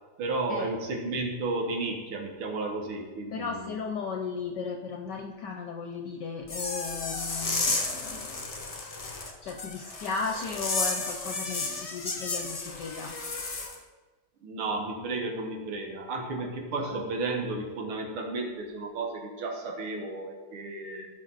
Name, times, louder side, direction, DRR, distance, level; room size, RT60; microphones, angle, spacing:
voice 1, 0.2-3.8 14.4-21.1, right 3 dB, 85° right, 1 dB, 2.2 m, -33 dB
voice 2, 3.3-8.4 9.4-13.1 16.8-17.0, left 5 dB, 65° left, 3 dB, 1.2 m, -36 dB
sound 1, 6.4-13.8, left 3 dB, 40° left, 0.5 m, -33 dB
15.5 x 5.4 x 4.0 m, 1.3 s
omnidirectional pair, 2.3 m